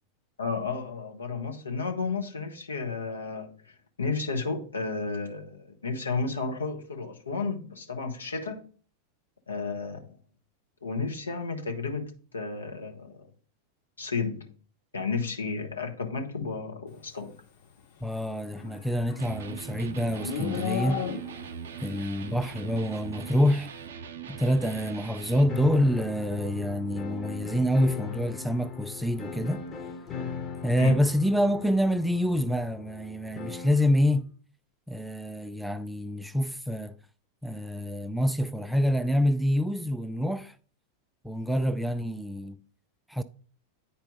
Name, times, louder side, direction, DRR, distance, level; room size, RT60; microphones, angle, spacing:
voice 1, 0.4-3.5 4.0-8.6 9.5-10.2 10.8-13.3 14.0-14.5 14.9-17.3 30.1-30.4 30.8-31.0, left 4 dB, 75° left, 1.2 m, -32 dB
voice 2, 18.0-21.1 21.8-23.7 24.3-29.6 30.6-34.3 34.9-36.9 37.4-40.5 41.2-42.6 43.1-43.2, equal, ahead, 0.4 m, -26 dB
Livestock farm animals working animals, 18.4-21.6, left 7 dB, 55° left, 2.3 m, -34 dB
Electric guitar, 19.2-25.6, right 7 dB, 60° right, 0.6 m, -41 dB
sound 1, 25.5-33.9, left 6 dB, 25° left, 1.2 m, -38 dB
9.6 x 4.4 x 3.7 m
figure-of-eight pair, 90°, 0 cm